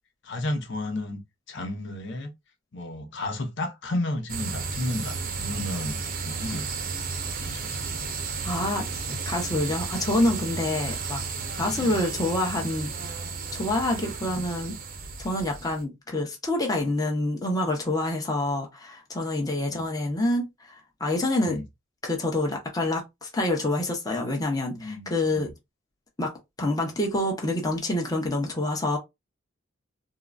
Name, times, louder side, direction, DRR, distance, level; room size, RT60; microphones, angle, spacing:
voice 1, 0.2-1.2 1.5-2.3 2.7-6.7 7.4-8.1 10.9-11.0 11.7-11.9 14.2-14.5 19.7-20.1 21.4-21.6 24.7-25.5, left 1 dB, 65° left, 0.8 m, -33 dB
sound 1, 4.3-15.8, right 5 dB, 45° right, 0.6 m, -33 dB
voice 2, 8.4-8.8 9.2-11.2 11.6-12.9 13.5-14.8 15.2-21.6 22.0-25.5 26.2-26.3 26.6-29.0, left 1 dB, 20° left, 0.8 m, -27 dB
3.7 x 2.0 x 2.3 m
head